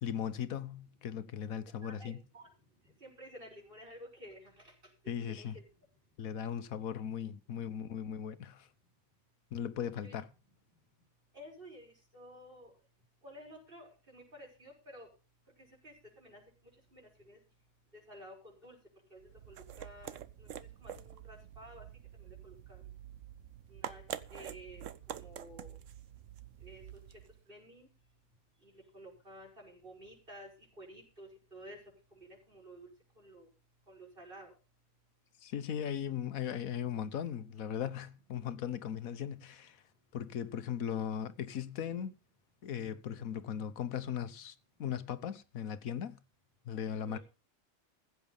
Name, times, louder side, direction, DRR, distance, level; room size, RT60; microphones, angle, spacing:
voice 1, 0.0-2.2 5.1-5.5 6.2-8.7 9.5-10.3 35.4-39.8 40.1-42.1 42.6-46.2 46.6-47.2, left 9 dB, 85° left, 1.3 m, -38 dB
voice 2, 1.6-2.5 2.8-4.7 5.3-5.6 10.0-10.2 11.3-12.7 13.2-15.1 15.6-16.4 16.9-17.4 17.9-18.8 19.1-20.5 20.8-21.9 22.2-22.8 23.7-24.0 24.3-25.8 26.6-27.0 27.5-27.9 28.6-30.5 30.8-31.8 32.1-32.9 33.2-33.5 33.9-34.5 36.0-36.2 46.9-47.2, equal, 40° right, 6.2 m, -52 dB
sound 1, 19.2-27.4, right 10 dB, 70° right, 1.1 m, -47 dB
15.5 x 8.4 x 5.4 m
omnidirectional pair, 1.4 m